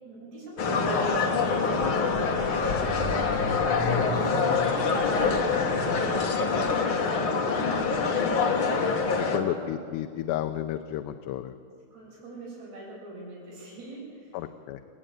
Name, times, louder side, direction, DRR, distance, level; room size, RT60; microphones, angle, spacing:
voice 1, 0.0-3.8 4.1-7.9 9.1-9.5 11.9-14.4, right 2 dB, 80° right, -5 dB, 9.7 m, -43 dB
sound 1, 0.6-9.4, left 4 dB, 60° left, 1.3 m, -25 dB
voice 2, 8.4-11.5 14.3-14.8, left 12 dB, 85° left, 7 dB, 2.8 m, -33 dB
29.5 x 10.0 x 8.9 m, 2.2 s
omnidirectional pair, 4.8 m